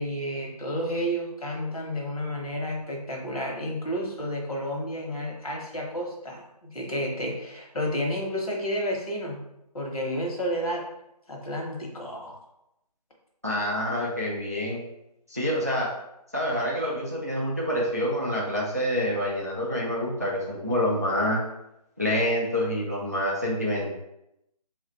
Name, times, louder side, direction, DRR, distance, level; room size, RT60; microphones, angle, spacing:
voice 1, 0.0-9.4 9.7-10.8 11.3-12.4, equal, 60° left, -1 dB, 1.1 m, -31 dB
voice 2, 13.4-14.8 15.3-15.9 16.3-21.4 22.0-23.9, equal, 25° right, -4 dB, 0.4 m, -27 dB
3.1 x 2.4 x 4.1 m, 0.83 s
hypercardioid pair, 180°, 21 cm